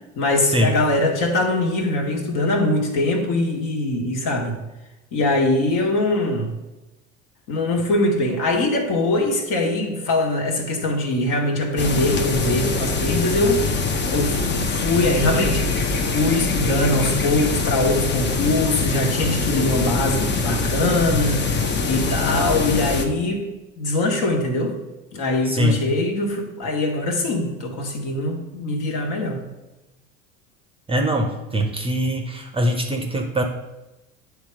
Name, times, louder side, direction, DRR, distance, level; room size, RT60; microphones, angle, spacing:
voice 1, 0.2-4.6 5.1-6.6 7.5-13.7 14.1-21.6 21.8-24.7 25.1-29.4, left 2 dB, 50° left, 2 dB, 1.5 m, -22 dB
sound 1, 11.8-23.1, left 4 dB, 25° left, 0.8 m, -23 dB
voice 2, 25.5-25.8 30.9-33.4, equal, 15° right, 3 dB, 0.8 m, -22 dB
8.7 x 3.5 x 4.9 m, 1.0 s
hypercardioid pair, 70°, 40 cm